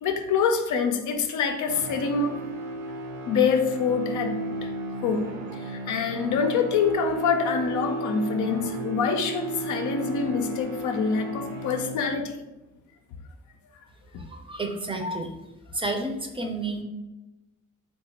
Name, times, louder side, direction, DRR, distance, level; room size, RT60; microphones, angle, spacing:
voice 1, 0.0-2.4 3.3-4.7 5.0-5.3 5.6-12.3, left 5 dB, 75° left, 5 dB, 0.5 m, -25 dB
sound 1, 1.7-12.4, right 2 dB, 65° right, 0.6 m, -34 dB
voice 2, 14.3-15.3 15.7-16.8, right 2 dB, 20° right, 3 dB, 0.5 m, -30 dB
3.2 x 2.3 x 4.1 m, 1.0 s
cardioid pair, 90°, 30 cm